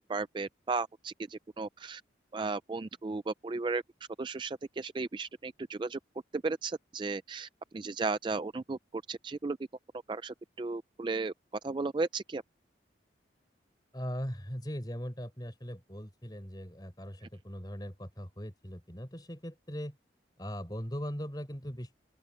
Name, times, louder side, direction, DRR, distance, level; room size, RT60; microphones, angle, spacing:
voice 1, 0.0-2.0 2.3-3.8 4.2-6.0 6.3-9.6 10.1-11.3 11.6-12.4, right 3 dB, 25° right, 0.3 m, -35 dB
voice 2, 13.9-20.0 20.4-21.9, equal, 20° left, 5.4 m, -40 dB
open air
head